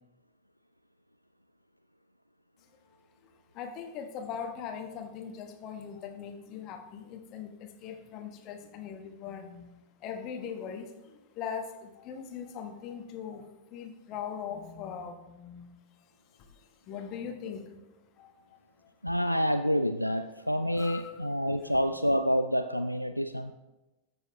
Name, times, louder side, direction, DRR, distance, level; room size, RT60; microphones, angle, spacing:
voice 1, 3.5-9.7 10.0-13.4 13.7-15.7 16.6-17.8 18.2-18.4 18.8-18.9 20.8-21.2 21.7-21.8, left 7 dB, 40° left, 6 dB, 1.2 m, -40 dB
voice 2, 19.0-23.5, equal, 90° left, 9 dB, 0.3 m, -28 dB
13.5 x 7.0 x 3.1 m, 1.0 s
figure-of-eight pair, 90°, 0 cm